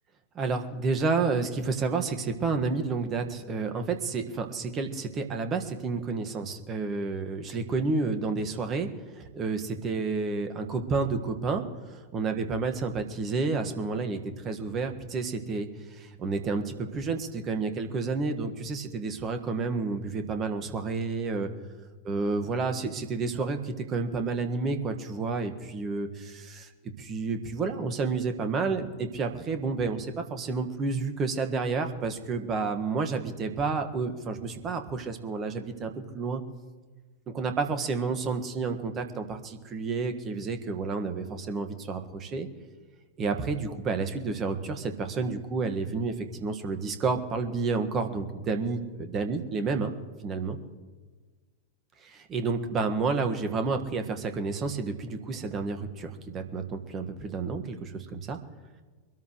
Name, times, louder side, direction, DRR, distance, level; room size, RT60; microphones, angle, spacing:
voice 1, 0.3-8.9 9.1-11.6 12.1-21.5 22.0-26.7 27.0-36.4 37.3-42.5 43.2-49.9 50.2-50.6 52.0-58.4, right 4 dB, 30° right, 6 dB, 1.6 m, -30 dB
24.5 x 13.0 x 3.2 m, 1.4 s
figure-of-eight pair, 90°, 0 cm